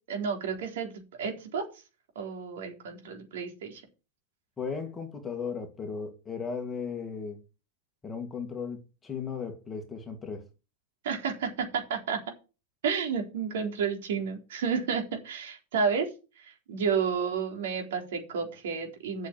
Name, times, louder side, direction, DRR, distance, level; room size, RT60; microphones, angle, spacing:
voice 1, 0.1-0.9 1.2-1.6 2.2-3.8 11.0-12.2 12.8-16.1 16.4-19.3, right 6 dB, 75° right, 3.8 m, -31 dB
voice 2, 4.6-7.4 8.0-10.5, left 6 dB, 10° left, 2.1 m, -36 dB
8.4 x 6.7 x 7.5 m
supercardioid pair, 155°, 0 cm